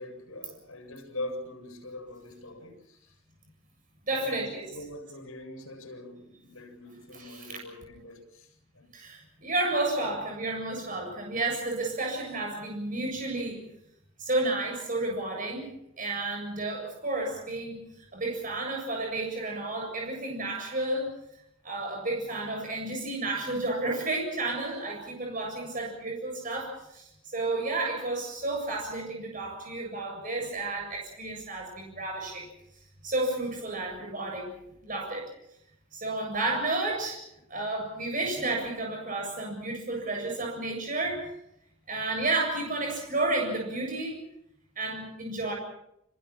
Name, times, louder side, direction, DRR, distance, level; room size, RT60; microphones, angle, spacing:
voice 1, 0.0-3.1 4.2-8.9, left 1 dB, 85° left, 7.5 m, -42 dB
voice 2, 4.1-4.7 7.1-7.6 8.9-13.6 14.2-21.1 21.6-32.5 33.0-34.5 34.8-35.3 35.9-37.2 37.5-41.3 41.9-44.2 44.8-45.5, right 2 dB, 40° right, 7.5 m, -31 dB
29.5 x 27.0 x 4.4 m
head